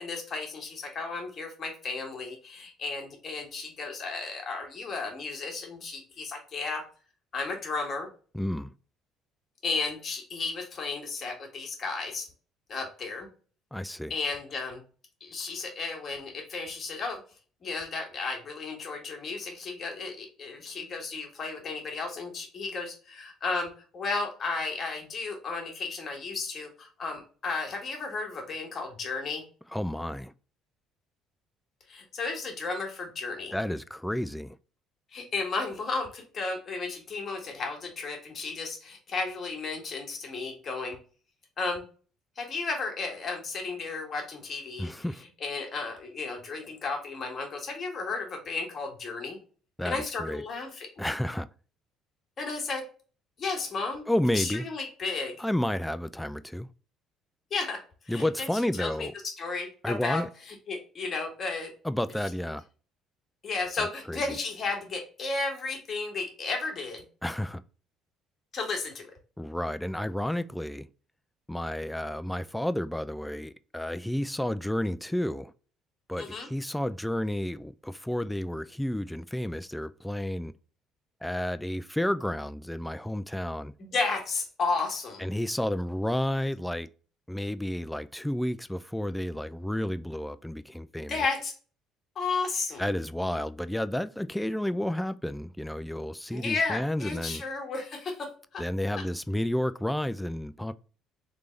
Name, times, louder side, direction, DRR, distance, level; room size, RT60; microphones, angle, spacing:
voice 1, 0.0-6.8 7.3-8.1 9.6-12.3 12.7-13.3 14.1-14.8 15.2-17.2 17.6-29.4 31.9-33.6 35.1-41.0 41.6-41.8 42.3-44.9 45.4-49.4 49.8-51.1 52.4-52.8 53.4-54.1 54.3-55.4 57.5-57.8 58.0-58.5 58.8-59.1 59.4-60.2 60.7-61.7 63.4-67.0 68.5-69.1 76.2-76.5 83.8-85.3 91.1-91.5 92.1-92.8 96.3-98.6, left 4 dB, 45° left, 1.7 m, -33 dB
voice 2, 8.3-8.7 13.7-14.1 29.7-30.3 33.5-34.6 44.8-45.2 49.8-50.4 51.0-51.5 54.1-54.6 55.4-56.7 58.1-59.1 59.8-60.3 61.8-62.6 63.8-64.2 67.2-67.6 69.4-70.9 71.5-75.5 76.1-80.5 81.2-83.7 85.2-86.9 87.3-91.3 92.8-97.4 98.6-100.7, left 1 dB, 5° left, 0.3 m, -31 dB
3.3 x 3.3 x 3.9 m
hypercardioid pair, 60°, 0 cm